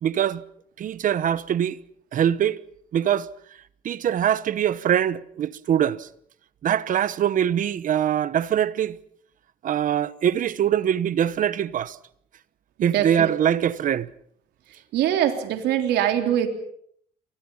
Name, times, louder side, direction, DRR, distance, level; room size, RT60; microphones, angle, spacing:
voice 1, 0.0-0.4 0.8-1.8 2.1-2.6 2.9-3.3 3.8-6.1 6.6-9.0 9.6-12.0 12.8-14.1, right 10 dB, 50° right, 1.1 m, -23 dB
voice 2, 12.8-13.7 14.9-16.5, right 11 dB, 80° right, 3.6 m, -23 dB
29.0 x 25.0 x 5.6 m
cardioid pair, 110°, 17 cm